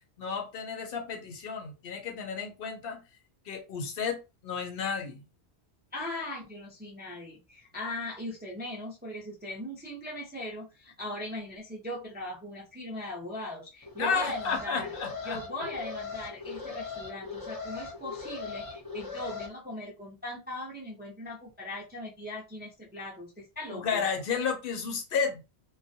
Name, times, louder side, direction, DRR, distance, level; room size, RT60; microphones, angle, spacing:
voice 1, 0.2-3.0 3.5-5.2 14.0-15.4 23.7-25.4, left 6 dB, 60° left, 0.8 m, -32 dB
voice 2, 5.9-14.9 15.2-24.0, left 1 dB, 15° right, 0.4 m, -39 dB
Alarm, 13.8-19.5, left 5 dB, 20° left, 0.7 m, -39 dB
2.3 x 2.1 x 2.6 m
omnidirectional pair, 1.2 m